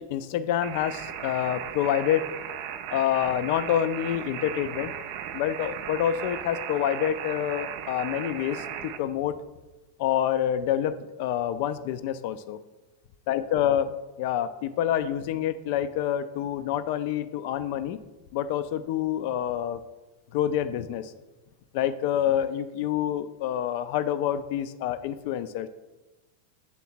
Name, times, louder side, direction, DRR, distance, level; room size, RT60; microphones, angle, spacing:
voice 1, 0.0-2.3 2.9-4.9 5.3-9.4 10.0-12.6 13.3-13.9 14.2-18.0 18.3-19.8 20.3-21.1 21.7-25.7, left 10 dB, 50° left, 12 dB, 0.4 m, -27 dB
sound 1, 0.6-9.0, right 9 dB, 45° right, 0.4 m, -36 dB
7.1 x 3.5 x 4.2 m, 1.1 s
figure-of-eight pair, 90°, 0 cm